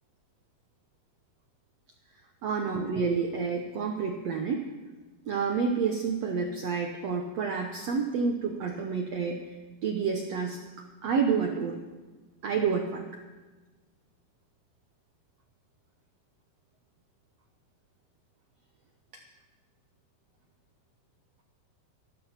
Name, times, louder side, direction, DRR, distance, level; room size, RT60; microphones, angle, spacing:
voice 1, 2.4-4.7 5.3-9.4 9.8-11.8 12.4-13.1 19.1-19.2, right 5 dB, 90° right, 2 dB, 1.4 m, -29 dB
14.0 x 13.0 x 5.8 m, 1.2 s
omnidirectional pair, 4.6 m